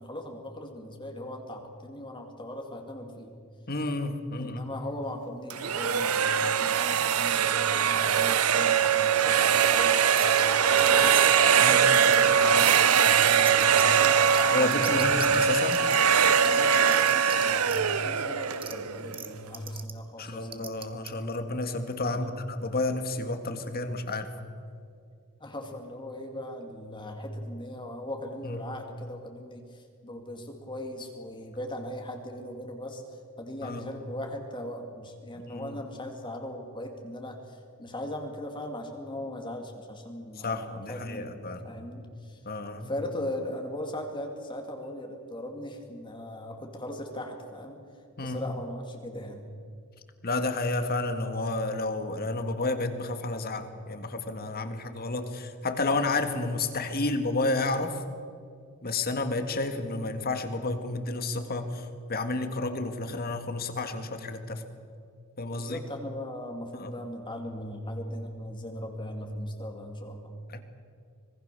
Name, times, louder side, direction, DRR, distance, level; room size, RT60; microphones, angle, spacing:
voice 1, 0.0-3.4 4.4-11.1 11.7-15.3 16.4-20.7 22.1-22.5 25.4-42.4 42.8-47.8 48.2-49.5 65.6-70.3, left 1 dB, 20° left, 3 dB, 2.2 m, -39 dB
voice 2, 3.7-4.7 11.6-11.8 14.5-15.8 20.2-24.3 28.5-28.6 33.6-33.8 35.5-35.8 40.4-41.6 42.5-42.9 48.2-48.4 50.2-58.0 58.8-64.6 65.4-65.8 66.7-66.9 70.5-70.6, left 2 dB, 45° left, 8 dB, 1.9 m, -31 dB
sound 1, 5.5-19.4, right 7 dB, 75° right, 0.8 m, -22 dB
sound 2, 10.2-10.4 10.8-11.4 11.9-12.1 12.6-12.8 13.2-13.8 14.3-14.4 14.7-16.0 16.4-17.4 17.7-17.8 18.6-18.7 19.1-19.3 19.5-19.9 20.5-21.1, right 7 dB, 25° right, 1.5 m, -38 dB
26.0 x 20.0 x 6.9 m, 2.3 s
head